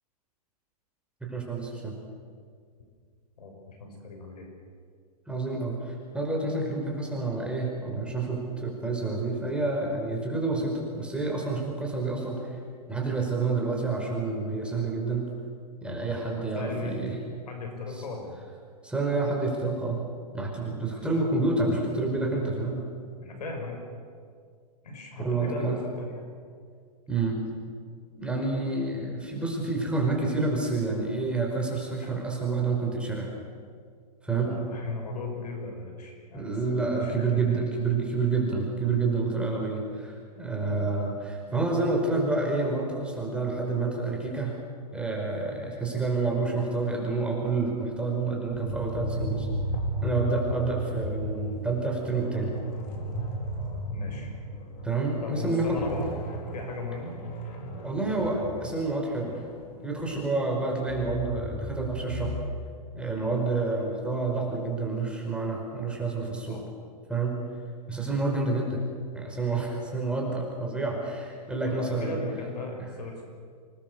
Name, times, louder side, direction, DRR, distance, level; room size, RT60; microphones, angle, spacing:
voice 1, 1.2-2.0 5.3-12.6 12.9-15.3 15.8-17.2 18.8-20.1 20.3-22.8 25.2-25.8 27.1-27.4 28.1-33.3 34.2-34.6 36.3-44.6 44.9-49.5 50.0-52.5 54.8-55.8 57.7-59.4 59.8-62.3 62.9-66.6 67.1-67.4 67.9-68.8 69.1-72.2, right 3 dB, 5° right, 0 dB, 5.1 m, -28 dB
voice 2, 3.4-4.5 16.5-17.0 17.5-18.4 20.8-21.2 23.2-23.8 24.8-26.1 34.3-37.6 40.7-40.9 50.5-50.6 53.9-54.3 55.2-56.1 56.5-57.1 66.5-66.7 68.7-68.8 71.7-73.3, left 3 dB, 80° left, 3 dB, 7.0 m, -37 dB
sound 1, 48.5-55.0 55.3-55.4 55.7-60.3 60.8-62.4, right 1 dB, 45° left, 4.4 m, -34 dB
26.0 x 20.5 x 6.9 m, 2.1 s
hypercardioid pair, 120°, 20 cm